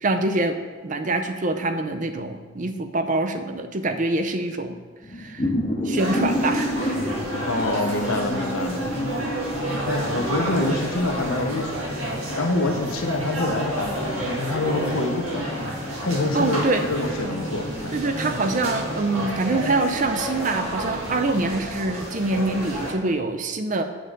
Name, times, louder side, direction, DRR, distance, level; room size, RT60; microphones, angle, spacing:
voice 1, 0.0-0.6 0.8-4.8 5.2-5.5 5.8-6.7 16.3-16.9 17.9-23.8, right 2 dB, 35° right, 7 dB, 0.5 m, -25 dB
sound 1, 5.0-19.8, left 1 dB, 25° left, 0.8 m, -31 dB
sound 2, 6.0-22.9, right 1 dB, 80° right, 1.9 m, -31 dB
voice 2, 7.5-8.9 9.9-12.0 12.3-15.5 16.0-18.0, left 2 dB, 75° left, 4 dB, 0.9 m, -26 dB
7.7 x 3.8 x 6.6 m, 1.4 s
head